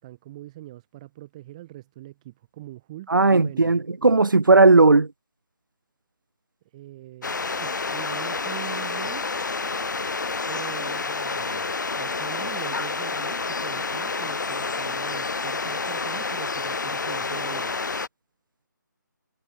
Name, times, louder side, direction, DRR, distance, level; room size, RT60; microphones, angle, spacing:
voice 1, 0.0-3.8 6.6-9.2 10.5-17.7, right 16 dB, 20° right, 4.2 m, -42 dB
voice 2, 3.1-5.1, right 3 dB, 80° right, 1.8 m, -16 dB
sound 1, 7.2-18.1, left 4 dB, 65° left, 1.1 m, -29 dB
figure-of-eight pair, 165°, 11 cm